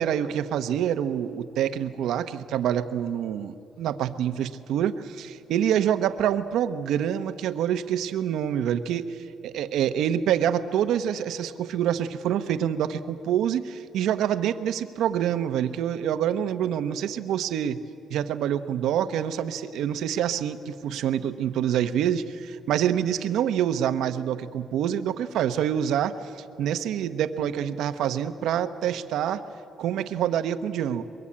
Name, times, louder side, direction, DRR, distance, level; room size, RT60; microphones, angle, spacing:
voice 1, 0.0-9.2 9.4-17.8 18.1-26.3 26.6-29.4 29.8-31.0, right 9 dB, 85° right, 10 dB, 1.0 m, -26 dB
23.0 x 22.0 x 8.7 m, 2.6 s
cardioid pair, 90°, 0 cm